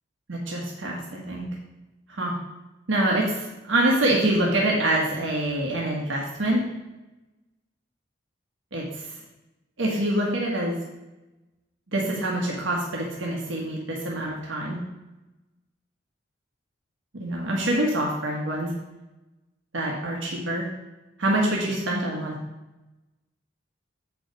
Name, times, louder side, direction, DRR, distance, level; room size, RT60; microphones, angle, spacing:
voice 1, 0.3-1.5 2.1-2.3 2.9-6.6 8.7-9.2 9.8-10.8 11.9-14.8 17.1-18.7 19.7-20.7 21.2-22.3, right 1 dB, 85° right, -2 dB, 1.4 m, -25 dB
7.4 x 4.8 x 5.2 m, 1.0 s
head